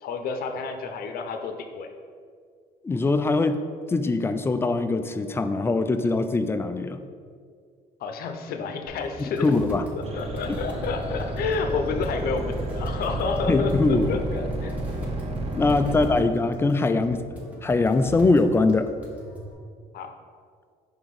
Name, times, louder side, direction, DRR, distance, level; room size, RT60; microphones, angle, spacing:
voice 1, 0.0-1.9 8.0-9.5 9.9-14.7 15.6-16.0 19.9-20.1, left 4 dB, 65° left, 6 dB, 0.7 m, -30 dB
voice 2, 2.8-3.6 3.9-7.0 9.2-9.9 10.5-10.6 13.5-14.2 15.5-17.2 17.6-18.9, left 3 dB, 15° left, 9 dB, 0.3 m, -22 dB
sound 1, 8.9-19.5, left 1 dB, 10° right, 1.3 m, -41 dB
sound 2, 10.0-16.2, right 1 dB, 35° right, 0.8 m, -31 dB
5.2 x 3.5 x 5.2 m, 2.1 s
cardioid pair, 110°, 17 cm